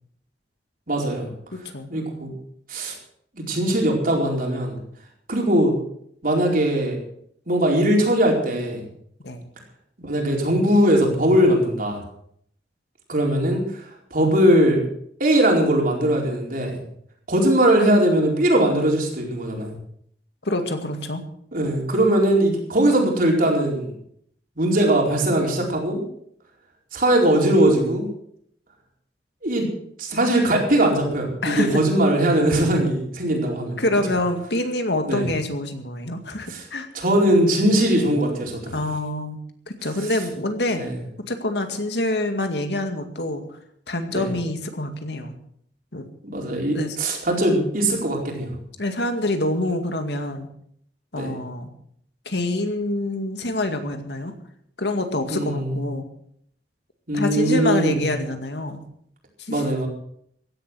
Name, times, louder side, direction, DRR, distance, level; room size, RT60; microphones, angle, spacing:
voice 1, 0.9-1.3 1.9-2.3 2.7-2.9 3.4-4.8 5.3-5.7 6.2-7.0 7.5-8.8 10.0-12.0 13.1-13.9 14.1-14.8 15.2-16.8 17.3-19.8 21.5-23.9 24.6-26.0 26.9-28.1 29.4-29.7 30.0-33.8 35.1-35.2 36.5-36.6 36.9-38.7 40.8-40.9 44.1-44.3 46.2-48.5 51.2-51.4 55.3-55.7 57.1-58.0 59.5-59.9, right 1 dB, 55° right, 0 dB, 4.6 m, -20 dB
voice 2, 1.5-1.9 9.2-9.5 20.4-21.2 31.4-31.8 33.8-36.9 38.7-39.4 39.7-40.8 41.2-43.4 43.9-45.4 45.9-46.0 46.7-47.0 48.8-50.5 51.1-51.7 52.3-54.3 54.8-56.0 57.1-58.8 59.4-59.7, left 1 dB, 70° left, 6 dB, 2.1 m, -26 dB
16.0 x 11.0 x 6.3 m, 0.67 s
head